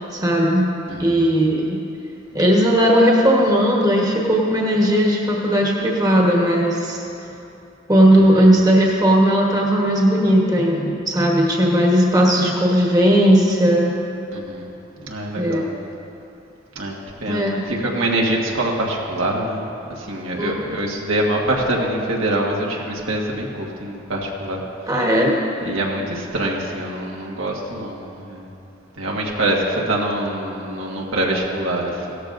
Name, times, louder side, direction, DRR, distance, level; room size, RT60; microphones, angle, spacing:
voice 1, 0.1-0.7 1.0-1.8 2.3-7.0 7.9-14.1 15.4-15.7 17.3-17.6 20.4-20.9 24.9-25.7, equal, 20° right, -2 dB, 1.2 m, -17 dB
voice 2, 0.9-1.2 8.1-8.5 14.3-14.7 15.0-15.7 16.7-24.6 25.6-28.5 29.0-32.2, right 1 dB, 85° right, -2 dB, 1.6 m, -25 dB
16.5 x 13.0 x 2.6 m, 2.8 s
head